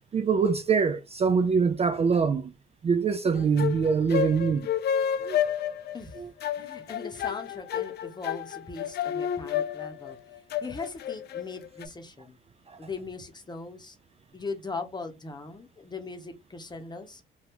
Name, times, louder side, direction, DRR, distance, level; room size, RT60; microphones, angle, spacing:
voice 1, 0.0-2.5 2.8-4.7 5.2-5.4 6.2-6.3 12.7-12.8, right 5 dB, 30° right, 0.4 m, -24 dB
sound 1, 3.3-11.9, left 9 dB, 55° left, 0.4 m, -30 dB
voice 2, 6.6-10.2 10.6-12.4 12.8-14.0 14.3-17.2, left 3 dB, 20° left, 0.8 m, -39 dB
2.8 x 2.3 x 3.5 m
cardioid pair, 90°, 20 cm